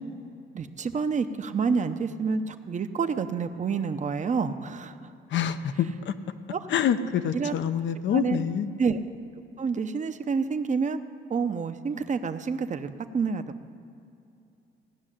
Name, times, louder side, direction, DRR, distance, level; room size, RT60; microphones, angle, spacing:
voice 1, 0.5-5.1 6.5-6.7 7.3-7.5 8.1-8.4 8.8-9.0 9.6-11.0 11.3-13.4, right 5 dB, 40° right, 9 dB, 0.8 m, -28 dB
voice 2, 5.3-6.1 6.7-8.7, left 8 dB, 70° left, 11 dB, 0.8 m, -26 dB
15.5 x 6.3 x 10.0 m, 2.7 s
cardioid pair, 90°, 20 cm